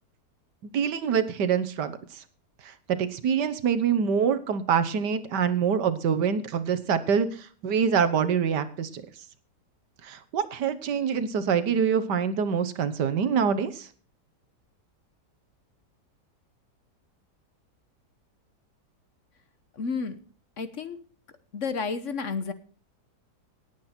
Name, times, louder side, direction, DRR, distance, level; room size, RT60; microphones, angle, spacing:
voice 1, 0.6-2.0 2.9-9.0 10.0-13.9, right 7 dB, 80° right, 13 dB, 1.7 m, -25 dB
voice 2, 19.7-20.2 20.6-21.0 21.5-22.5, left 5 dB, 50° left, 12 dB, 1.3 m, -31 dB
18.0 x 8.5 x 4.4 m, 0.43 s
omnidirectional pair, 1.8 m